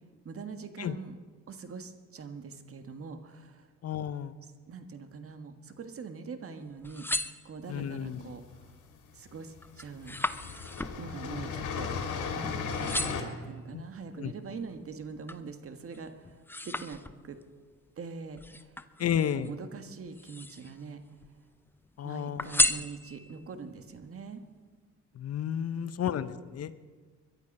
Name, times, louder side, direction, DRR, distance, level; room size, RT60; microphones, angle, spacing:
voice 1, 0.2-1.2 1.5-3.7 4.7-8.7 9.1-10.2 11.0-12.5 13.1-17.4 18.0-21.0 22.0-24.4 25.7-26.1, right 5 dB, 50° right, 8 dB, 1.6 m, -43 dB
voice 2, 3.8-4.4 7.7-8.2 13.7-13.8 14.2-14.3 19.0-19.5 22.0-22.5 25.2-26.7, left 9 dB, 55° left, 14 dB, 0.8 m, -32 dB
sound 1, 6.7-8.0 8.5-8.9 9.3-12.4 12.7-13.4 14.0-15.5 15.9-17.5 18.4-19.5 20.0-20.8 21.2-21.9 22.4-23.4 24.0-24.1, left 1 dB, 5° left, 0.6 m, -34 dB
sound 2, 7.8-8.7 9.6-9.7 10.0-13.2, left 5 dB, 75° left, 2.8 m, -35 dB
22.0 x 12.0 x 5.4 m, 1.5 s
cardioid pair, 90°, 30 cm